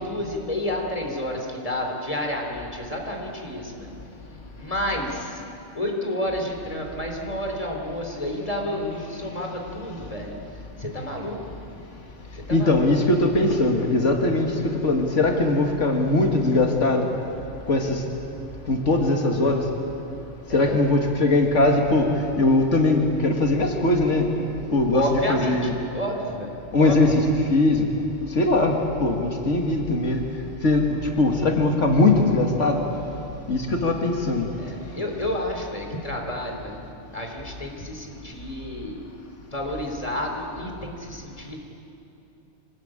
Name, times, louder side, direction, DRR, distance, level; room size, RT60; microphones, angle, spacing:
voice 1, 0.0-3.9 4.5-5.4 5.7-10.3 10.8-11.5 12.5-12.9 20.5-20.7 24.9-27.0 34.6-36.8 37.1-39.0 39.5-41.6, left 1 dB, 30° left, 1 dB, 3.6 m, -30 dB
voice 2, 12.5-17.1 17.7-18.0 18.7-19.7 20.5-24.3 24.7-25.0 25.3-25.7 26.7-27.9 28.3-30.2 30.6-32.8 33.5-34.5, left 2 dB, 85° left, 2 dB, 2.3 m, -21 dB
25.5 x 20.5 x 8.9 m, 2.8 s
omnidirectional pair, 1.2 m